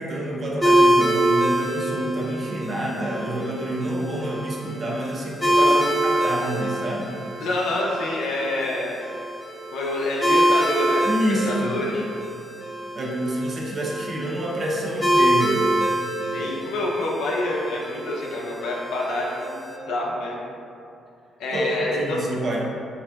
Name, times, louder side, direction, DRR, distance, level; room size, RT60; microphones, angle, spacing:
voice 1, 0.0-5.7 6.0-7.1 11.0-11.9 12.9-15.7 16.3-16.5 21.5-22.7, right 1 dB, 45° right, -3 dB, 0.6 m, -27 dB
sound 1, 0.6-19.8, right 1 dB, 5° left, 0.5 m, -25 dB
voice 2, 5.5-6.0 7.4-9.0 9.7-12.0 16.3-19.6 19.9-20.4 21.4-22.2, left 2 dB, 85° left, -3 dB, 0.5 m, -27 dB
3.3 x 2.6 x 2.2 m, 2.4 s
cardioid pair, 90°, 0 cm